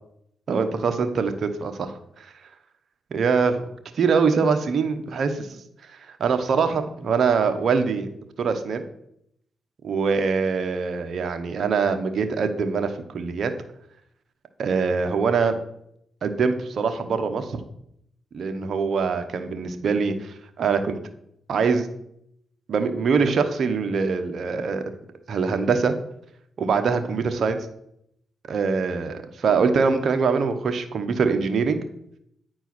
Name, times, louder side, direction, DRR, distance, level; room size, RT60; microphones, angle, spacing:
voice 1, 0.5-2.3 3.1-3.6 3.9-5.6 6.1-8.1 8.4-8.9 9.8-13.5 14.6-15.6 16.2-17.6 18.3-20.9 21.5-21.9 22.7-24.8 25.3-25.9 26.6-27.6 28.5-31.8, right 5 dB, 65° right, 8 dB, 1.0 m, -23 dB
9.5 x 4.5 x 6.0 m, 0.75 s
cardioid pair, 60°, 0 cm